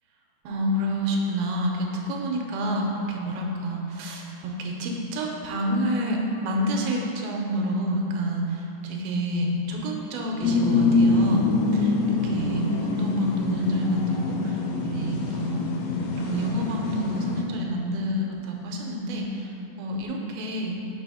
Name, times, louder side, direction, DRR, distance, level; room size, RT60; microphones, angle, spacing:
voice 1, 0.4-11.4 11.7-15.7 16.2-20.8, equal, 90° right, 0 dB, 2.5 m, -28 dB
sound 1, 10.4-17.4, left 3 dB, 90° left, 2.5 m, -25 dB
6.9 x 3.4 x 5.4 m, 2.9 s
omnidirectional pair, 4.1 m